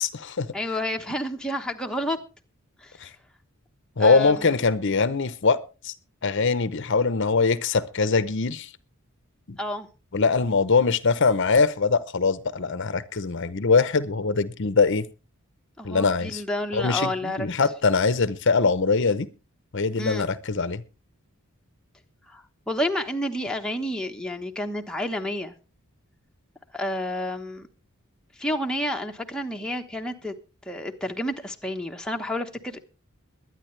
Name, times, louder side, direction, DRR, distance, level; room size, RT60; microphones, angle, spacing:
voice 1, 0.0-0.5 3.0-3.1 4.0-5.9 6.2-8.7 9.5-9.6 10.1-15.0 15.8-16.4 16.7-19.3 19.7-20.8, left 4 dB, 55° left, 0.8 m, -22 dB
voice 2, 0.5-2.2 2.8-2.9 4.0-4.5 9.6-9.9 15.8-17.5 20.0-20.3 22.3-25.5 26.7-27.7 28.4-30.3 30.7-32.8, left 1 dB, 5° left, 1.2 m, -30 dB
22.5 x 9.8 x 3.3 m
head